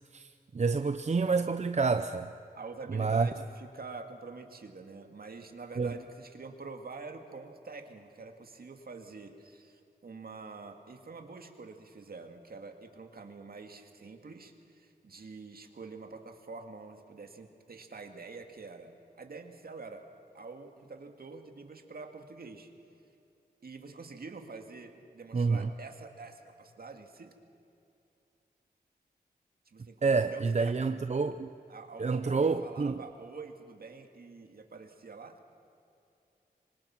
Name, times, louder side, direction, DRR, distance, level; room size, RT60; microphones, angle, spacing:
voice 1, 0.1-2.3 2.9-3.3 5.8-5.9 25.3-25.7 30.0-31.5 32.0-33.0, right 4 dB, 45° right, 0.7 m, -28 dB
voice 2, 2.6-20.1 20.3-22.7 23.6-27.4 29.7-31.0 31.7-35.4, right 4 dB, 70° right, 2.2 m, -46 dB
26.5 x 25.0 x 6.0 m
wide cardioid pair, 105°, 16 cm